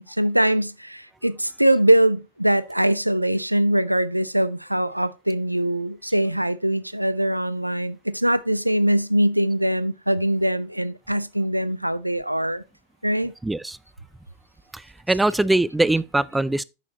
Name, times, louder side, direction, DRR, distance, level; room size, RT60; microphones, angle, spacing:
voice 1, 0.0-12.6 13.0-13.3, right 1 dB, 90° right, 0.5 m, -22 dB
voice 2, 13.4-13.8 14.7-16.6, right 2 dB, 5° right, 0.4 m, -22 dB
10.5 x 7.3 x 2.9 m
figure-of-eight pair, 90°, 0 cm